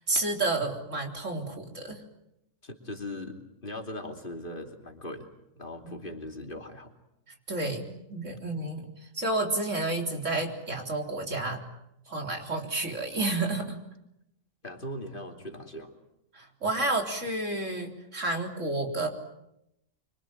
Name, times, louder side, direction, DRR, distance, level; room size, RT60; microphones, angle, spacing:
voice 1, 0.0-2.0 5.8-5.9 7.5-8.9 9.1-11.6 12.1-13.8 16.3-19.1, right 2 dB, 70° right, 3 dB, 4.2 m, -30 dB
voice 2, 2.6-5.3 5.6-6.9 14.6-15.9, left 1 dB, 40° left, 3 dB, 3.1 m, -39 dB
25.5 x 25.5 x 9.0 m, 0.83 s
omnidirectional pair, 1.3 m